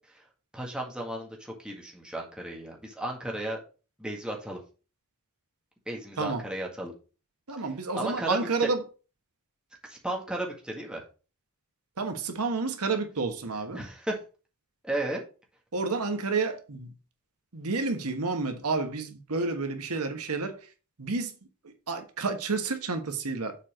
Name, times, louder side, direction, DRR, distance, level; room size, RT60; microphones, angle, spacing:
voice 1, 0.5-3.6 4.0-4.6 5.9-6.9 7.9-8.7 9.8-11.0 13.7-14.2 14.8-15.2, right 1 dB, 5° right, 1.8 m, -34 dB
voice 2, 7.5-8.8 12.0-13.8 15.7-16.9 17.5-20.6 21.0-21.3 21.6-23.6, right 4 dB, 90° right, 1.4 m, -30 dB
7.3 x 4.5 x 5.1 m
head